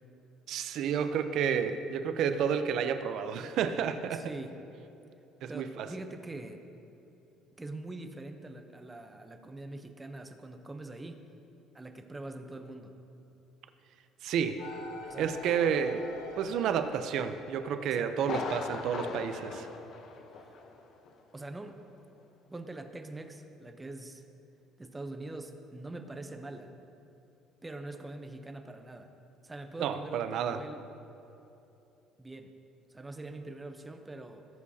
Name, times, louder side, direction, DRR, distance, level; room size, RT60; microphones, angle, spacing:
voice 1, 0.5-4.3 5.4-5.9 14.2-14.6 15.2-16.1 16.4-19.7 29.8-30.6, right 7 dB, 65° right, 9 dB, 0.6 m, -30 dB
voice 2, 4.1-4.6 5.5-6.7 7.6-11.2 11.7-13.0 15.1-15.4 17.8-18.3 21.3-21.8 22.5-24.3 24.8-26.7 27.6-29.1 29.4-30.8 32.2-32.5 32.9-34.5, right 2 dB, 15° right, 6 dB, 0.8 m, -43 dB
sound 1, 14.6-19.7, left 2 dB, 85° left, 1.6 m, -46 dB
Thunder, 18.2-20.8 21.1-21.2 21.7-21.8, left 4 dB, 55° left, 0.9 m, -39 dB
18.5 x 8.3 x 2.8 m, 2.9 s
cardioid pair, 120°, 0 cm